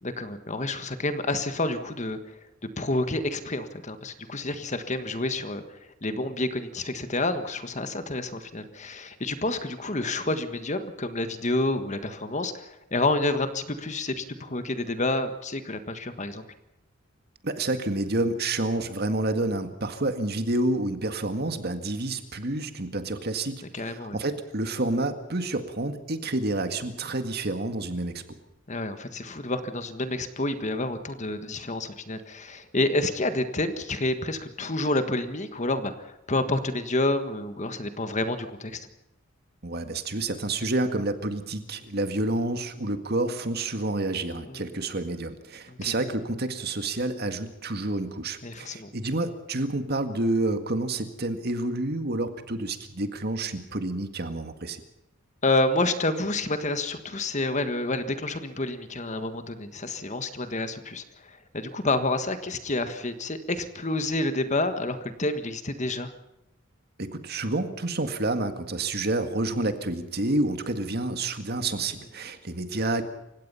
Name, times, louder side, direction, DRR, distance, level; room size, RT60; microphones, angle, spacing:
voice 1, 0.0-2.4 2.8-16.4 23.7-24.2 28.7-38.9 44.5-44.6 45.7-45.9 48.4-48.9 55.4-66.1, left 2 dB, 35° left, 10 dB, 1.5 m, -29 dB
voice 2, 17.4-28.2 39.6-54.8 67.0-73.0, right 2 dB, 50° right, 8 dB, 1.9 m, -29 dB
28.5 x 16.5 x 5.7 m, 0.89 s
head